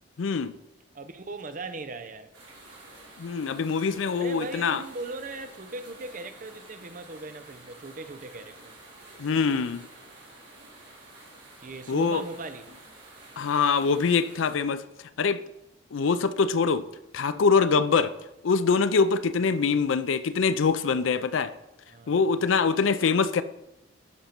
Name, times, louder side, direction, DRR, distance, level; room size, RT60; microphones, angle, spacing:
voice 1, 0.2-0.5 3.2-4.8 9.2-9.9 11.9-12.2 13.4-14.8 15.2-15.4 15.9-16.8 17.1-18.1 18.4-21.5 22.1-23.4, left 5 dB, 85° left, 0.5 m, -24 dB
voice 2, 0.9-2.3 4.1-8.7 11.6-12.7 21.9-22.6, right 2 dB, 45° right, 0.6 m, -39 dB
sound 1, 2.3-14.5, right 2 dB, 65° right, 3.2 m, -50 dB
10.5 x 5.3 x 4.4 m
head